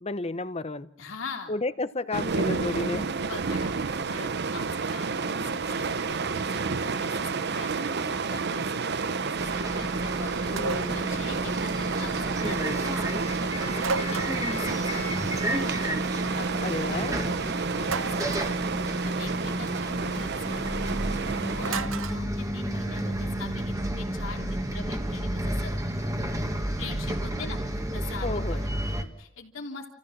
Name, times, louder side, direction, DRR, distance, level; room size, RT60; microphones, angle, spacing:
voice 1, 0.0-0.9 1.5-3.1 10.5-11.0 16.6-17.2 28.2-28.6, left 2 dB, 30° left, 14 dB, 0.8 m, -32 dB
voice 2, 1.0-1.5 3.2-15.2 15.5-15.8 16.4-17.4 17.7-18.7 19.0-21.1 21.5-25.7 26.8-27.6 27.9-29.9, left 4 dB, 85° left, 2 dB, 3.2 m, -43 dB
sound 1, 2.1-21.7, right 4 dB, 55° right, 0.7 m, -30 dB
Bus, 9.4-29.0, right 1 dB, 15° right, 1.7 m, -31 dB
sound 2, 10.6-11.1 13.8-14.6 17.8-18.5 21.6-22.2, right 4 dB, 80° right, 0.9 m, -32 dB
30.0 x 15.0 x 7.3 m, 0.75 s
head